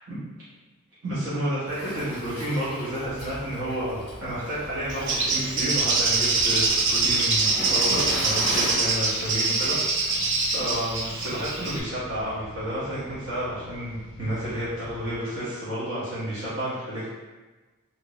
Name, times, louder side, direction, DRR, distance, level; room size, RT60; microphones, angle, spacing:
voice 1, 1.0-17.1, right 1 dB, 90° right, -12 dB, 1.1 m, -31 dB
Waves surf, 1.7-8.7, equal, 25° right, 0.9 m, -37 dB
sound 1, 3.0-15.2, left 2 dB, 60° left, 0.4 m, -45 dB
Bird, 4.9-11.8, right 3 dB, 55° right, 0.5 m, -24 dB
2.9 x 2.6 x 3.0 m, 1.2 s
head